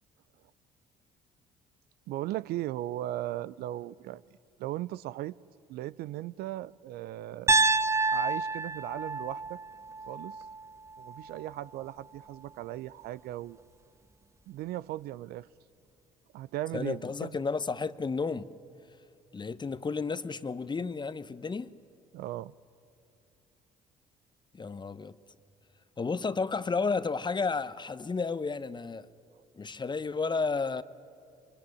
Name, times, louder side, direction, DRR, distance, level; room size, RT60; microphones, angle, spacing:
voice 1, 2.1-4.2 4.6-5.4 5.7-7.5 8.1-9.6 10.1-10.4 11.0-13.6 14.5-15.5 16.3-17.4 22.1-22.5, right 15 dB, 65° right, 0.5 m, -37 dB
Piano, 7.5-11.5, right 3 dB, 15° right, 0.6 m, -29 dB
voice 2, 16.7-18.5 19.3-21.7 24.5-25.2 26.0-29.1 29.6-30.8, left 4 dB, 25° left, 0.9 m, -32 dB
23.5 x 21.0 x 9.8 m
hypercardioid pair, 55°, 17 cm